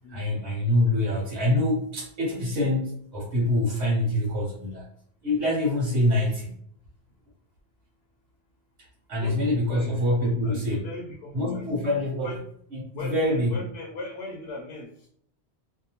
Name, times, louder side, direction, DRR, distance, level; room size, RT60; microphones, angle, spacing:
voice 1, 0.1-4.9 5.2-6.5 9.1-10.8 11.3-12.4 12.7-13.6, left 1 dB, 90° right, -4 dB, 1.2 m, -25 dB
voice 2, 9.1-11.7 12.2-12.4 12.9-15.1, left 2 dB, 70° left, -1 dB, 0.8 m, -39 dB
2.7 x 2.1 x 2.9 m, 0.67 s
omnidirectional pair, 1.1 m